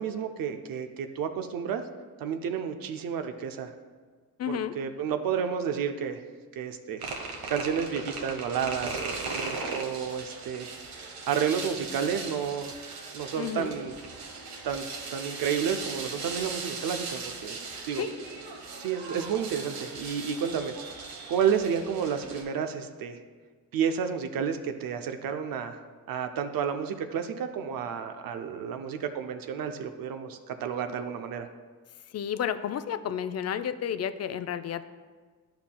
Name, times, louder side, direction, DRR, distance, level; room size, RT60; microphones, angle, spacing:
voice 1, 0.0-1.8 2.2-3.7 4.5-6.2 6.6-7.0 7.5-10.7 11.3-12.8 13.1-13.9 14.6-14.8 15.1-18.0 18.8-20.7 21.3-23.2 23.7-25.8 26.1-31.5, right 7 dB, 75° right, 7 dB, 0.6 m, -31 dB
voice 2, 4.4-4.7 13.4-13.7 18.0-18.1 32.1-34.8, left 8 dB, 45° left, 11 dB, 0.4 m, -31 dB
sound 1, 7.0-22.4, right 4 dB, 90° right, 1.1 m, -38 dB
10.5 x 5.7 x 2.2 m, 1.5 s
cardioid pair, 75°, 35 cm